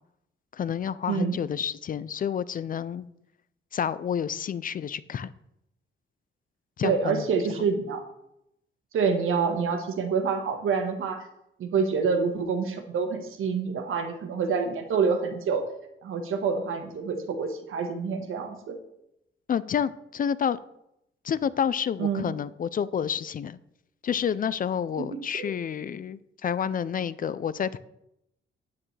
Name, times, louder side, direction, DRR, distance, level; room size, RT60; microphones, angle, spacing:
voice 1, 0.5-3.1 3.7-5.3 6.8-7.2 19.5-20.6 21.2-23.6 24.0-27.8, left 8 dB, 45° left, 17 dB, 0.4 m, -29 dB
voice 2, 1.1-1.4 6.8-8.0 8.9-11.2 11.6-15.6 16.0-18.8 22.0-22.2 25.0-25.5, right 5 dB, 80° right, 6 dB, 1.4 m, -27 dB
9.8 x 9.5 x 3.3 m, 0.81 s
wide cardioid pair, 135°, 21 cm